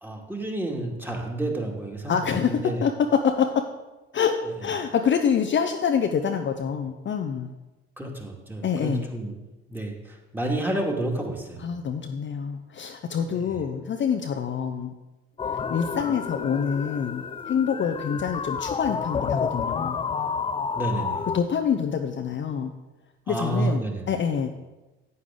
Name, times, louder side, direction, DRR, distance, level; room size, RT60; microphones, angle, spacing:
voice 1, 0.0-2.1 2.5-2.8 8.0-9.3 9.7-11.6 13.5-13.6 20.7-21.3 23.3-24.1, right 2 dB, 5° right, 0 dB, 2.2 m, -30 dB
voice 2, 2.1-3.7 4.1-7.5 8.6-9.1 11.6-14.9 15.7-20.0 21.3-22.7 23.3-24.5, left 7 dB, 35° left, 4 dB, 0.8 m, -26 dB
sound 1, 15.4-21.4, left 6 dB, 20° left, 0.4 m, -30 dB
9.6 x 8.5 x 3.8 m, 1.1 s
hypercardioid pair, 55°, 31 cm